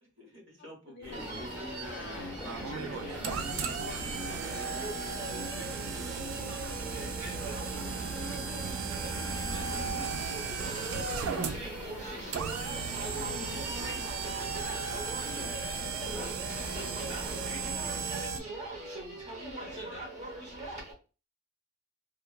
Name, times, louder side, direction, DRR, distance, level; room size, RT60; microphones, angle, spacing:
voice 1, 0.0-1.5 4.3-5.1 18.7-20.5, left 1 dB, 65° right, 0 dB, 1.1 m, -55 dB
voice 2, 0.6-1.6 1.8-3.8 10.4-10.7 11.8-12.5 13.1-14.2 15.2-17.7, left 4 dB, 55° left, 8 dB, 0.3 m, -49 dB
sound 1, 1.0-18.0, left 1 dB, 10° right, 0.8 m, -44 dB
Human voice, 1.1-20.9, right 1 dB, 35° right, 0.9 m, -40 dB
sound 2, 2.4-18.4, right 6 dB, 90° right, 0.3 m, -36 dB
3.0 x 2.0 x 2.2 m, 0.32 s
head